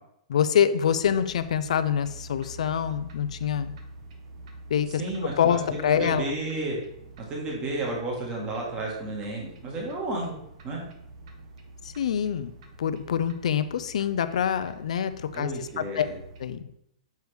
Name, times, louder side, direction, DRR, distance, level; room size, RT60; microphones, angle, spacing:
voice 1, 0.3-3.7 4.7-5.0 5.4-6.3 12.0-12.5 12.8-15.5 15.8-16.1 16.4-16.6, left 8 dB, 80° left, 12 dB, 0.4 m, -25 dB
sound 1, 0.8-16.6, right 2 dB, 55° right, 1.0 m, -47 dB
voice 2, 4.9-6.8 7.3-10.3 10.6-10.8 15.3-16.2, right 2 dB, 25° right, -2 dB, 1.4 m, -32 dB
6.7 x 4.6 x 3.3 m, 0.76 s
hypercardioid pair, 160°, 4 cm